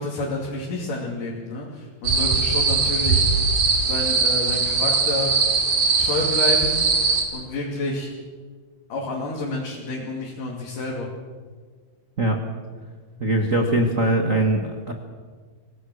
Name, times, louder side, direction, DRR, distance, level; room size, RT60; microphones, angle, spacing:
voice 1, 0.0-3.3 3.9-5.3 6.0-6.8 7.3-8.1 8.9-11.1, left 2 dB, 60° left, -3 dB, 4.1 m, -29 dB
sound 1, 2.0-7.2, right 4 dB, 60° right, 4.0 m, -20 dB
voice 2, 13.2-14.9, right 1 dB, 85° right, 3 dB, 0.7 m, -21 dB
25.5 x 17.5 x 6.4 m, 1.5 s
omnidirectional pair, 4.4 m